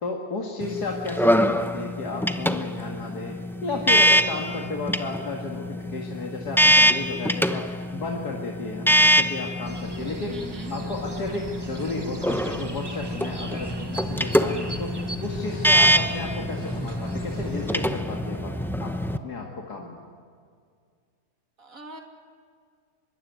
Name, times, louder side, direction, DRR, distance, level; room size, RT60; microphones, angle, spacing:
voice 1, 0.0-10.4 10.7-14.9 15.2-18.5 18.8-19.0 19.2-20.0, left 3 dB, 70° left, -1 dB, 2.6 m, -33 dB
sound 1, 0.6-19.2, equal, 5° left, 0.5 m, -24 dB
sound 2, 9.6-18.0, right 2 dB, 15° right, 1.0 m, -38 dB
voice 2, 10.3-10.7 21.6-22.0, right 3 dB, 55° right, 3 dB, 3.0 m, -40 dB
25.0 x 22.5 x 9.4 m, 2.2 s
omnidirectional pair, 1.8 m